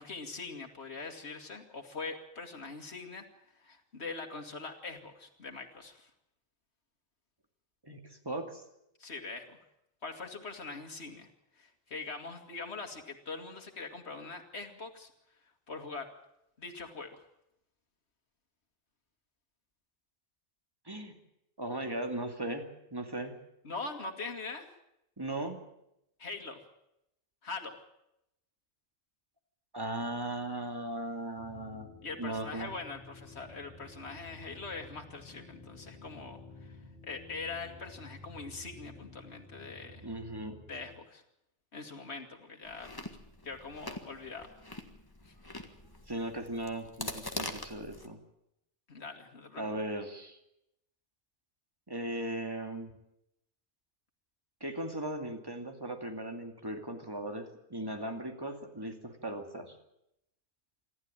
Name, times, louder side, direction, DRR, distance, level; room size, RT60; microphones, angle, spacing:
voice 1, 0.0-3.2 3.5-6.1 9.0-9.6 10.0-11.3 11.5-15.1 15.7-16.1 16.6-17.2 23.6-24.7 26.2-26.6 27.4-27.8 32.0-36.8 37.0-40.1 40.7-41.2 41.7-42.9 43.4-44.5 45.2-45.3 48.9-49.6, left 4 dB, 70° left, 3 dB, 2.5 m, -42 dB
voice 2, 7.8-8.6 20.9-21.2 21.6-23.4 25.2-25.6 29.7-32.7 40.0-40.6 46.1-48.2 49.6-50.4 51.9-52.9 54.6-59.8, right 1 dB, 20° right, 5 dB, 2.4 m, -38 dB
sound 1, 31.4-41.0, left 2 dB, ahead, 5.1 m, -52 dB
Chewing mastication, 42.6-48.1, left 1 dB, 20° left, 1.7 m, -43 dB
26.5 x 12.5 x 8.9 m, 0.82 s
omnidirectional pair, 1.2 m